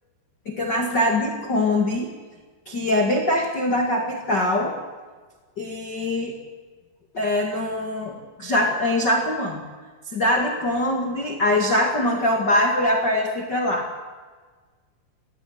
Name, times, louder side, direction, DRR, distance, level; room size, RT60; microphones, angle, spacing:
voice 1, 0.4-2.1 2.6-4.8 5.6-6.4 7.1-9.6 10.1-14.1, left 1 dB, 70° left, 1 dB, 1.0 m, -23 dB
24.0 x 16.5 x 9.5 m, 1.4 s
omnidirectional pair, 5.9 m